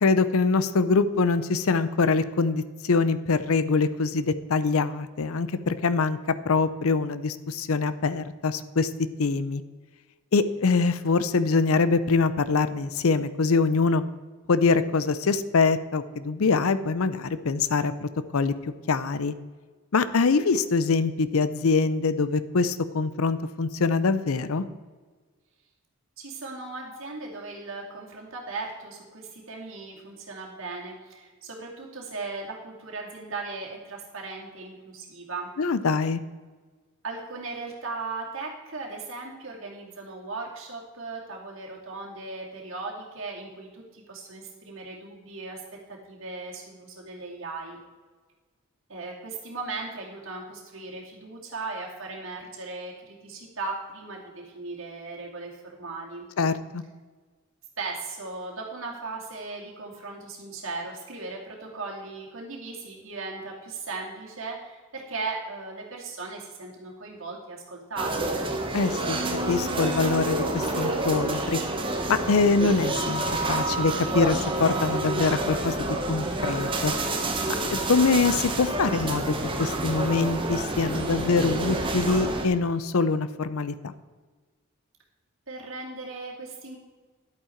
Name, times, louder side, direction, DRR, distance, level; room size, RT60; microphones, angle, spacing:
voice 1, 0.0-6.2 6.4-8.9 9.2-9.6 10.3-14.0 14.5-19.3 19.9-24.7 35.6-36.2 56.4-56.8 68.7-69.2 69.5-71.6 72.1-76.9 77.7-83.9, left 4 dB, 70° left, 14 dB, 0.6 m, -24 dB
voice 2, 26.2-35.5 37.0-45.6 45.9-47.8 48.9-56.3 57.8-68.3 85.5-86.8, right 3 dB, 60° right, -2 dB, 2.4 m, -37 dB
sound 1, 68.0-82.5, right 2 dB, 25° right, 1.1 m, -28 dB
11.0 x 8.6 x 4.5 m, 1.4 s
head